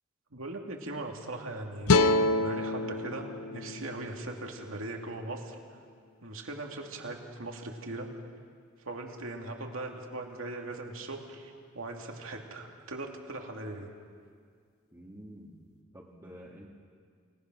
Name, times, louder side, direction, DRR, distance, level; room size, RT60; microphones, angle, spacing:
voice 1, 0.3-2.0 2.4-5.6 6.2-8.1 8.8-13.9, right 2 dB, 75° right, 2 dB, 2.6 m, -39 dB
sound 1, 1.9-5.1, left 2 dB, 90° left, 0.6 m, -28 dB
voice 2, 14.9-15.6 15.9-16.7, equal, 15° right, -5 dB, 1.8 m, -48 dB
28.5 x 18.5 x 6.3 m, 2.1 s
head